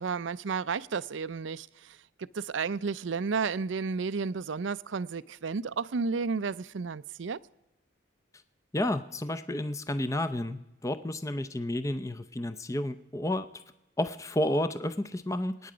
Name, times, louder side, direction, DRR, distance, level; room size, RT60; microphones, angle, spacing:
voice 1, 0.0-2.0 2.3-7.4, right 5 dB, 75° right, 0.5 m, -32 dB
voice 2, 8.7-13.5 14.0-15.7, left 1 dB, 15° left, 0.5 m, -31 dB
27.5 x 9.5 x 5.0 m
head